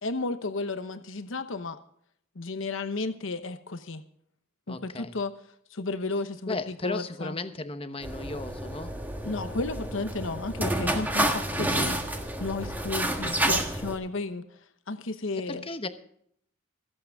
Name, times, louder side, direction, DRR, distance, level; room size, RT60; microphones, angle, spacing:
voice 1, 0.0-1.8 2.4-4.0 4.7-5.3 5.7-6.6 6.8-7.3 9.2-14.4 14.9-15.6, left 3 dB, 60° left, 10 dB, 1.0 m, -33 dB
voice 2, 4.7-5.1 6.5-8.9 15.4-15.9, left 2 dB, 25° left, 9 dB, 1.0 m, -35 dB
sound 1, 8.0-14.0, right 1 dB, 10° right, 1.5 m, -29 dB
26.0 x 8.7 x 3.6 m, 0.67 s
head